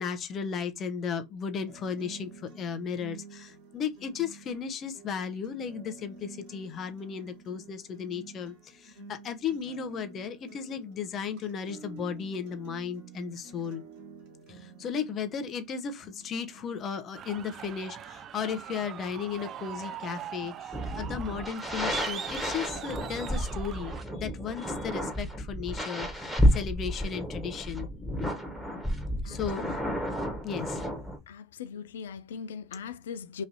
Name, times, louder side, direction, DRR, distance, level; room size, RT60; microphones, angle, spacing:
voice 1, 0.0-13.8 14.5-27.9 28.2-28.4 29.2-29.8 30.4-30.8, left 7 dB, 35° left, 0.7 m, -35 dB
sound 1, 1.7-17.7, right 4 dB, 65° right, 1.4 m, -50 dB
sound 2, 17.2-24.0, right 9 dB, 40° right, 0.3 m, -41 dB
sound 3, 20.7-31.2, equal, 5° left, 1.2 m, -31 dB
voice 2, 29.2-29.7 31.3-33.4, left 6 dB, 80° left, 0.3 m, -40 dB
3.1 x 2.6 x 3.9 m
hypercardioid pair, 90°, 0 cm